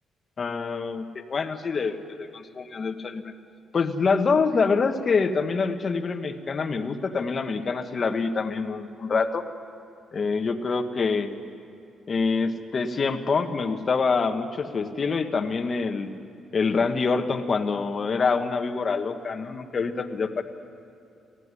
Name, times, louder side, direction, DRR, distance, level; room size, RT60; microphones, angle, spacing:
voice 1, 0.4-3.3 3.7-9.4 10.1-11.3 12.1-16.1 16.5-20.4, left 4 dB, 40° left, 8 dB, 1.3 m, -26 dB
19.5 x 14.5 x 9.8 m, 2.8 s
cardioid pair, 90°, 0 cm